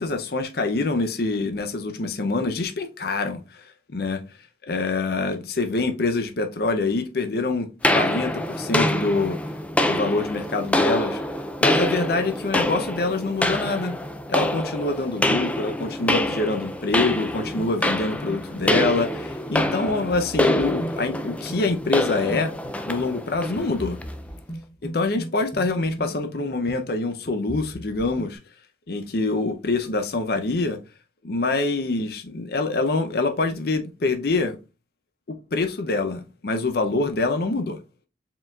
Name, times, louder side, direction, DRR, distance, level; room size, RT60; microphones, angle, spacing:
voice 1, 0.0-3.7 3.9-4.2 4.6-9.4 9.8-11.2 11.6-13.9 14.3-22.5 22.9-24.0 24.8-28.4 28.9-30.8 31.2-34.6 35.3-37.8, left 3 dB, 55° left, 0.6 m, -25 dB
sound 1, 7.8-24.2, left 1 dB, 5° left, 0.3 m, -26 dB
sound 2, 17.1-28.4, right 1 dB, 30° left, 0.8 m, -38 dB
4.5 x 3.8 x 2.3 m
head